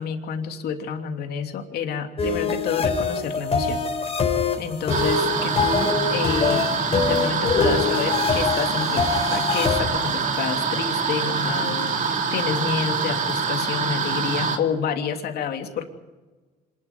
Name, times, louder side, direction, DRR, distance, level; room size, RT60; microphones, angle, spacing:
voice 1, 0.0-3.8 4.6-15.9, left 7 dB, 70° left, 4 dB, 3.1 m, -29 dB
sound 1, 2.2-9.8, left 5 dB, 35° left, 4.3 m, -24 dB
sound 2, 4.9-14.6, right 5 dB, 50° right, 2.8 m, -25 dB
26.5 x 12.0 x 9.7 m, 1.3 s
cardioid pair, 110°, 17 cm